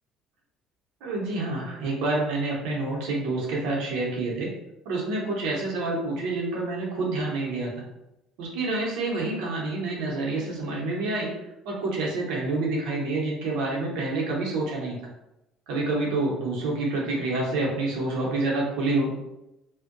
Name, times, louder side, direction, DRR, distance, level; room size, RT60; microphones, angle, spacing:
voice 1, 1.0-4.5 4.8-7.7 8.4-11.3 11.6-15.0 15.7-19.1, right 2 dB, 85° right, -3 dB, 0.7 m, -28 dB
2.6 x 2.1 x 2.5 m, 0.90 s
cardioid pair, 140°, 0 cm